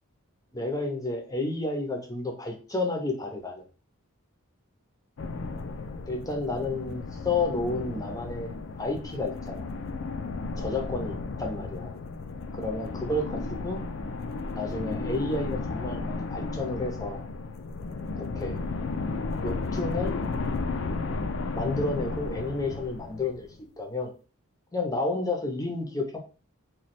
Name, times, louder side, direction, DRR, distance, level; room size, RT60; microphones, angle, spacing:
voice 1, 0.5-3.7 6.1-9.7 10.6-11.9 12.5-13.8 14.5-17.3 18.1-18.6 19.4-20.2 21.5-23.5 23.8-24.1 24.7-26.2, left 2 dB, 15° left, 3 dB, 0.6 m, -31 dB
sound 1, 5.2-23.6, left 3 dB, 55° left, 0.4 m, -34 dB
3.1 x 2.2 x 4.2 m, 0.36 s
head